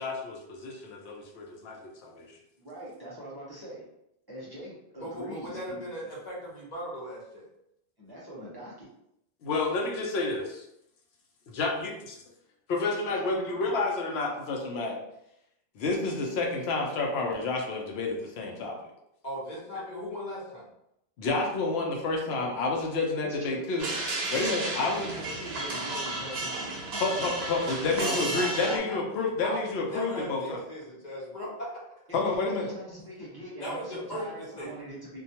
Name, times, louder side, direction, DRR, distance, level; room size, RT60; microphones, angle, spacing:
voice 1, 0.0-2.3 9.4-10.6 11.5-11.9 12.7-15.0 15.8-18.8 21.2-23.8 24.3-25.1 27.0-30.6 32.1-32.7, left 3 dB, 80° left, 0 dB, 0.8 m, -29 dB
voice 2, 2.6-3.8 4.3-5.8 8.0-8.9 13.1-13.8 23.1-23.7 24.5-27.4 32.1-35.2, equal, 25° right, -7 dB, 0.7 m, -42 dB
voice 3, 5.0-7.5 19.2-20.7 28.0-29.0 29.4-31.7 33.6-34.7, equal, 45° left, -5 dB, 0.9 m, -37 dB
sound 1, 23.8-28.8, right 2 dB, 80° right, 0.8 m, -33 dB
2.3 x 2.2 x 2.8 m, 0.79 s
omnidirectional pair, 1.0 m